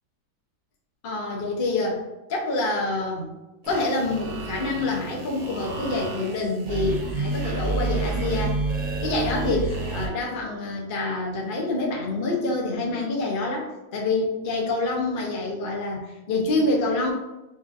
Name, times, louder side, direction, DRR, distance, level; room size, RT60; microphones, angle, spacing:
voice 1, 1.0-2.0 2.3-3.4 3.7-8.6 9.0-17.1, left 2 dB, 55° left, -2 dB, 0.5 m, -26 dB
sound 1, 3.6-10.1, right 3 dB, 80° right, 1.5 m, -29 dB
5.2 x 2.5 x 2.5 m, 1.0 s
omnidirectional pair, 1.8 m